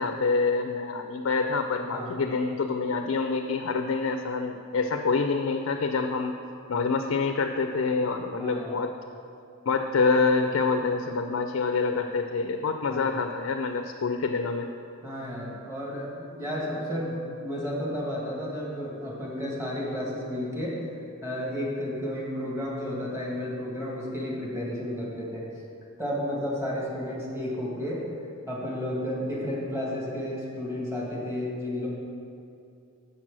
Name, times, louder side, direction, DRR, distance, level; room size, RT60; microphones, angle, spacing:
voice 1, 0.0-6.3 6.7-8.9 9.7-14.7, left 4 dB, 75° left, 5 dB, 0.4 m, -26 dB
voice 2, 1.9-2.2 8.4-8.8 12.9-13.1 15.0-20.8 21.2-25.5 26.0-28.0 28.5-31.9, left 1 dB, 15° right, -4 dB, 1.7 m, -32 dB
6.9 x 6.0 x 6.1 m, 2.5 s
head